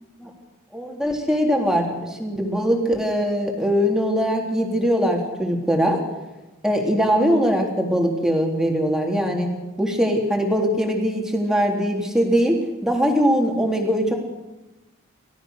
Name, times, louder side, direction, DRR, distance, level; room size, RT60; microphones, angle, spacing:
voice 1, 0.7-6.0 6.6-9.5 9.8-14.1, equal, 5° right, 1 dB, 3.4 m, -21 dB
29.5 x 14.0 x 6.7 m, 1.1 s
head